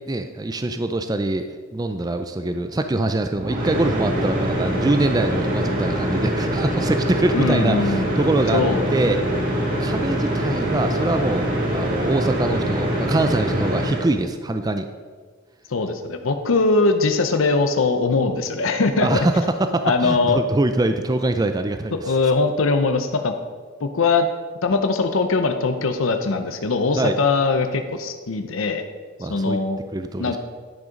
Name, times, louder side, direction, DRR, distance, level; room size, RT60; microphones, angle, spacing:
voice 1, 0.1-8.6 8.9-9.2 9.8-14.9 19.0-22.1 27.0-27.2 29.2-29.6 29.9-30.4, right 2 dB, 20° right, 8 dB, 0.4 m, -23 dB
sound 1, 3.4-14.0, equal, 40° right, 2.0 m, -24 dB
voice 2, 7.3-8.1 8.5-8.9 15.7-19.3 19.8-20.4 22.0-23.3 23.8-24.3 24.6-28.8 29.3-29.8 30.2-30.4, left 3 dB, 80° left, 7 dB, 0.7 m, -21 dB
10.5 x 6.3 x 5.2 m, 1.5 s
head